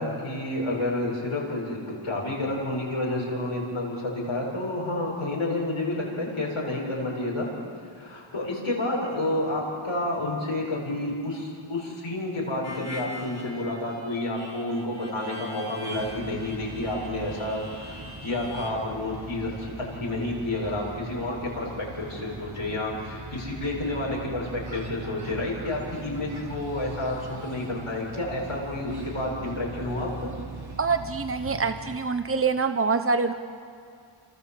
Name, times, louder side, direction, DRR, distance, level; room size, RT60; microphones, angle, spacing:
voice 1, 0.0-7.5 7.9-19.7 20.0-30.3, left 2 dB, 85° left, -3 dB, 7.5 m, -30 dB
Harmonica, 12.6-18.7, left 1 dB, 30° left, 3.9 m, -43 dB
sound 1, 16.0-32.0, right 3 dB, 50° right, 3.0 m, -40 dB
voice 2, 30.8-33.3, right 4 dB, 25° right, 9 dB, 1.0 m, -25 dB
28.5 x 27.5 x 7.7 m, 2.3 s
wide cardioid pair, 65°, 50 cm